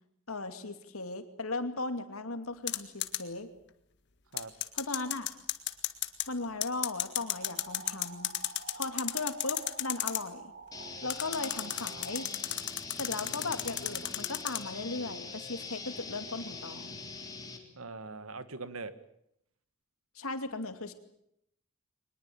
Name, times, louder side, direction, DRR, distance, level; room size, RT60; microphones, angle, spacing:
voice 1, 0.3-3.5 4.7-5.3 6.3-8.3 8.7-10.4 11.0-12.3 13.0-17.0 20.1-20.9, left 3 dB, 85° left, 9 dB, 2.6 m, -37 dB
sound 1, 2.7-3.2 4.4-6.3 6.6-10.2 11.1-14.6, left 13 dB, 55° left, 1.8 m, -33 dB
sound 2, 7.2-12.3, right 5 dB, 45° right, 2.0 m, -49 dB
sound 3, 10.7-17.6, left 4 dB, 20° left, 3.5 m, -43 dB
voice 2, 13.2-13.8 17.7-18.9, right 3 dB, 85° right, 13 dB, 1.8 m, -43 dB
23.0 x 21.0 x 8.7 m, 0.75 s
head